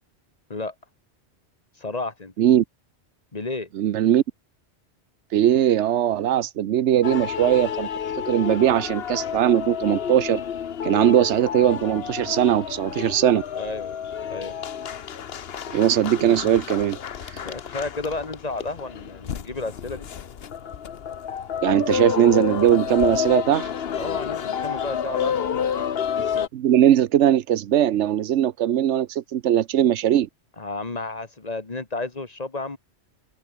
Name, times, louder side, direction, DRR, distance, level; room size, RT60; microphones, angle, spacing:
voice 1, 1.8-2.3 3.3-3.7 13.6-14.0 14.3-14.6 17.4-20.1 24.0-25.9 30.6-32.8, left 3 dB, 35° left, 1.8 m, -32 dB
voice 2, 3.8-4.2 5.3-7.9 8.3-10.4 10.8-13.4 15.7-17.0 21.6-23.7 26.5-30.3, right 11 dB, 90° right, 1.0 m, -20 dB
sound 1, 7.0-26.5, left 8 dB, 60° left, 1.1 m, -30 dB
open air
omnidirectional pair, 1.1 m